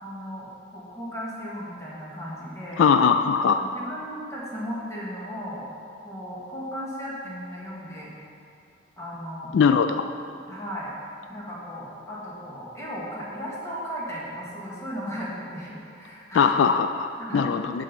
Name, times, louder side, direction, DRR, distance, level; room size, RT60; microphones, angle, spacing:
voice 1, 0.0-2.9 3.6-5.7 6.0-8.1 9.0-9.5 10.5-10.9 11.3-16.7 17.2-17.5, equal, 15° left, -6 dB, 1.8 m, -36 dB
voice 2, 2.8-3.6 9.5-10.0 16.3-17.8, left 6 dB, 75° left, 9 dB, 0.3 m, -20 dB
8.7 x 6.2 x 5.3 m, 2.5 s
head